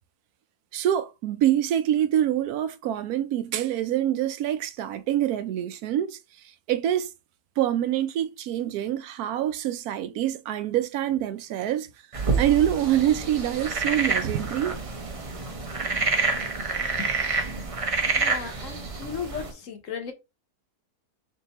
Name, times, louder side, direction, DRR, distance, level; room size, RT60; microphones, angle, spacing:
voice 1, 0.7-7.1 7.6-11.9 12.4-14.8, right 11 dB, 80° right, 1.0 m, -25 dB
sound 1, 12.1-19.5, right 4 dB, 40° right, 0.5 m, -28 dB
voice 2, 18.2-20.1, left 6 dB, 60° left, 1.2 m, -35 dB
3.5 x 2.7 x 4.0 m
omnidirectional pair, 1.6 m